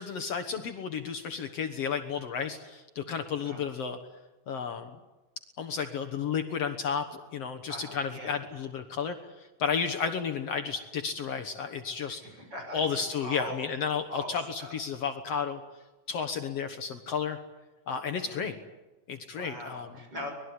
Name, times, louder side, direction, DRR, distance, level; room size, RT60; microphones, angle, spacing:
voice 1, 0.0-4.0 4.5-5.0 5.6-12.2 12.7-15.6 16.1-17.4 17.9-18.6 19.1-20.0, left 6 dB, 60° left, 7 dB, 2.3 m, -32 dB
voice 2, 7.7-8.4 12.1-13.6 14.1-14.7 18.1-18.4 19.3-20.3, equal, 35° right, 3 dB, 7.2 m, -41 dB
25.0 x 21.0 x 9.8 m, 1.1 s
omnidirectional pair, 3.4 m